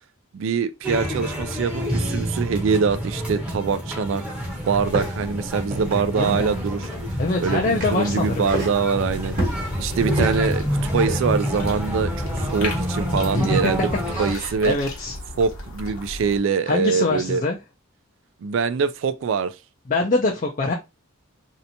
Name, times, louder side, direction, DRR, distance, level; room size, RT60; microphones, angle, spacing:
voice 1, 0.3-4.2 4.6-6.9 7.4-7.6 7.9-9.4 9.8-10.6 10.9-13.9 14.2-14.7 15.4-17.4 18.4-19.6, right 5 dB, 65° right, 0.3 m, -23 dB
sound 1, 0.8-14.3, equal, 5° right, 0.8 m, -28 dB
sound 2, 4.5-11.2, right 1 dB, 40° right, 1.1 m, -31 dB
voice 2, 6.2-6.6 7.2-8.5 13.3-13.7 14.1-15.2 16.7-17.6 19.9-20.7, left 3 dB, 35° left, 0.4 m, -24 dB
sound 3, 9.0-16.4, left 1 dB, 80° left, 1.0 m, -36 dB
3.2 x 2.8 x 2.6 m
head